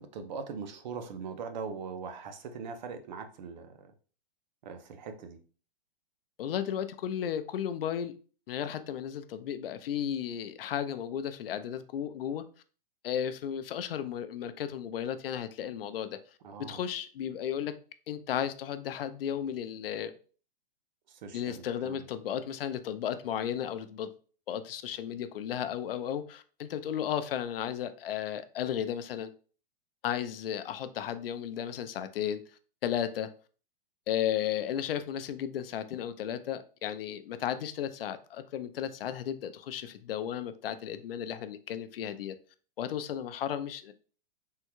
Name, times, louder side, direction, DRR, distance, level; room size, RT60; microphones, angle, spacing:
voice 1, 0.0-3.9 4.6-5.4 16.4-16.8 21.1-22.0, right 5 dB, 50° right, 7 dB, 0.6 m, -41 dB
voice 2, 6.4-8.1 8.5-12.4 13.0-16.2 16.7-17.7 18.1-20.1 21.3-24.1 24.5-29.3 30.0-32.4 32.8-33.3 34.1-42.4 42.8-43.9, left 9 dB, 75° left, 10 dB, 0.5 m, -34 dB
3.6 x 2.2 x 2.9 m, 0.40 s
hypercardioid pair, 160°, 29 cm